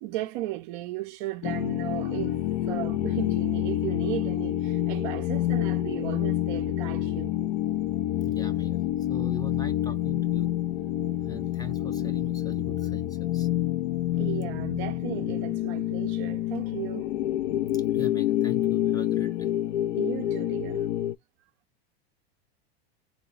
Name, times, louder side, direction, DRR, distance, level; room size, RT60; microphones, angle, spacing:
voice 1, 0.0-7.4 14.2-17.1 19.9-20.9, right 15 dB, 50° right, 0.5 m, -35 dB
sound 1, 1.4-21.2, left 13 dB, 55° left, 0.4 m, -28 dB
voice 2, 8.2-10.5 11.3-13.5 17.7-19.5, left 3 dB, 10° left, 0.6 m, -41 dB
3.7 x 2.1 x 3.8 m
hypercardioid pair, 100°, 31 cm